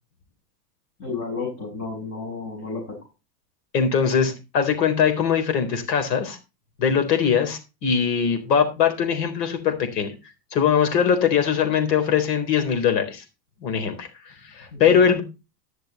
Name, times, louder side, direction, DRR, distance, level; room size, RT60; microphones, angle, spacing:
voice 1, 1.0-3.0 14.7-15.0, left 4 dB, 30° left, -2 dB, 7.3 m, -32 dB
voice 2, 3.7-6.4 6.8-10.1 10.5-13.2 13.6-15.2, left 7 dB, 80° left, 6 dB, 4.2 m, -21 dB
14.5 x 6.6 x 4.3 m, 0.27 s
supercardioid pair, 130°, 48 cm